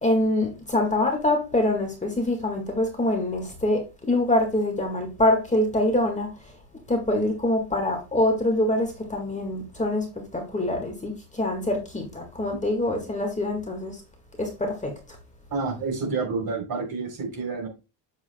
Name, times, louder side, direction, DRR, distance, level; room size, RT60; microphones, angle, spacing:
voice 1, 0.0-3.8 4.1-6.3 6.9-10.0 10.3-14.0 14.4-14.9, left 1 dB, 15° left, 1.7 m, -24 dB
voice 2, 15.5-17.7, right 4 dB, 45° right, 3.7 m, -29 dB
8.1 x 7.3 x 2.2 m
cardioid pair, 130°, 47 cm